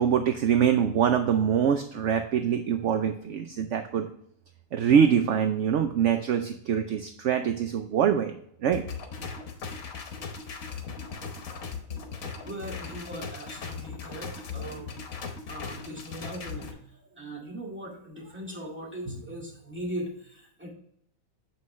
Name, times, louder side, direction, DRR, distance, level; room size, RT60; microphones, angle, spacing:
voice 1, 0.0-4.1 4.7-8.3 8.6-8.8, right 8 dB, 65° right, 7 dB, 0.8 m, -24 dB
sound 1, 8.7-16.7, left 5 dB, 70° left, 1.4 m, -38 dB
voice 2, 12.2-15.1 15.5-20.7, right 1 dB, 10° right, -3 dB, 2.0 m, -39 dB
7.6 x 5.6 x 3.1 m, 0.69 s
omnidirectional pair, 1.5 m